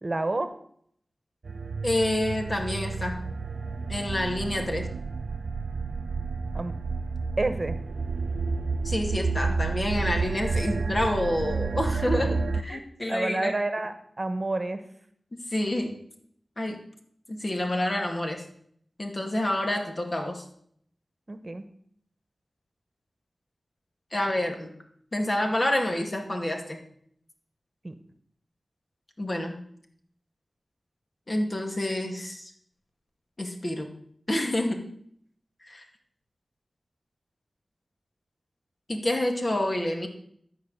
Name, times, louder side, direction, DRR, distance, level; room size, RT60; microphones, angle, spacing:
voice 1, 0.0-0.5 6.5-6.7 7.4-7.8 11.9-12.0 12.7-14.8 21.3-21.6 27.8-27.9, right 2 dB, 45° right, 10 dB, 1.1 m, -29 dB
sound 1, 1.4-12.6, right 4 dB, 85° right, 0.4 m, -30 dB
voice 2, 1.8-3.2 3.9-4.9 8.8-13.5 15.3-15.9 16.6-16.8 17.3-18.4 19.0-20.4 24.1-24.7 25.1-26.8 29.2-29.6 31.3-32.5 33.4-33.9 34.3-34.9 35.7-35.8 38.9-40.1, left 1 dB, 45° left, 3 dB, 2.2 m, -28 dB
13.0 x 4.8 x 8.2 m, 0.65 s
cardioid pair, 45°, 0 cm